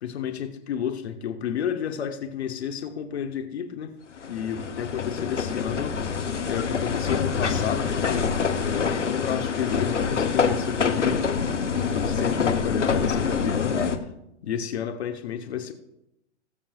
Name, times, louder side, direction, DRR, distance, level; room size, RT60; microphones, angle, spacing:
voice 1, 0.0-3.9 4.3-6.0 6.5-11.3 11.9-14.1 14.4-15.7, left 8 dB, 65° left, 6 dB, 1.1 m, -31 dB
sound 1, 4.2-14.0, left 6 dB, 90° left, 1.0 m, -26 dB
19.5 x 7.1 x 2.5 m, 0.85 s
figure-of-eight pair, 110°, 35 cm